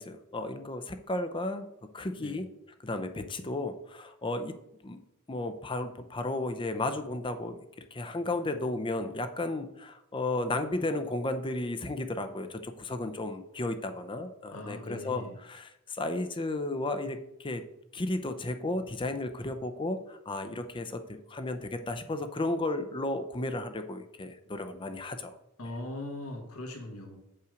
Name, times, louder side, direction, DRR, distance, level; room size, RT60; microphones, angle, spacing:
voice 1, 0.0-1.7 1.9-2.5 2.8-4.6 4.8-5.0 5.3-7.6 7.9-17.6 17.9-25.4, left 2 dB, 20° left, 8 dB, 0.5 m, -34 dB
voice 2, 14.5-15.3 25.6-27.2, left 1 dB, 75° left, 3 dB, 1.6 m, -40 dB
7.9 x 5.6 x 5.0 m, 0.83 s
head